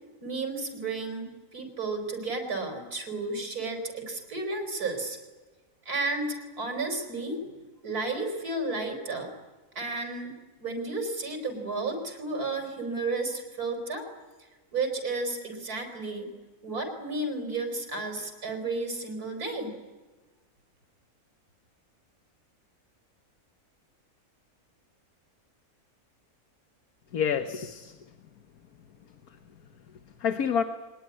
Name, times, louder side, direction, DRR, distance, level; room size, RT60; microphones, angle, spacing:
voice 1, 0.2-5.2 5.8-7.4 7.8-9.3 9.7-10.3 10.6-14.1 14.7-16.3 16.6-19.7, right 3 dB, 85° right, 5 dB, 4.9 m, -32 dB
voice 2, 27.1-28.1 29.3-30.6, left 7 dB, 80° left, 8 dB, 1.6 m, -30 dB
23.5 x 20.5 x 9.8 m, 1.3 s
omnidirectional pair, 1.5 m